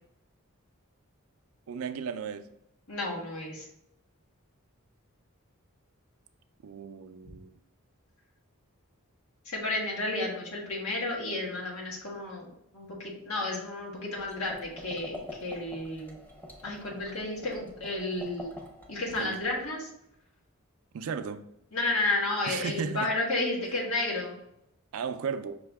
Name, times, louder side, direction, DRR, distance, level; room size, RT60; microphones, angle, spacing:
voice 1, 1.7-2.5 6.6-7.6 19.2-19.4 20.9-21.4 22.5-23.1 24.9-25.6, right 6 dB, 75° right, 9 dB, 0.4 m, -35 dB
voice 2, 2.9-3.7 9.4-16.2 16.6-18.5 18.9-19.9 21.7-24.4, left 2 dB, 80° left, -4 dB, 1.4 m, -32 dB
sound 1, 14.1-19.7, left 1 dB, 10° left, 0.7 m, -46 dB
5.6 x 2.7 x 3.4 m, 0.80 s
head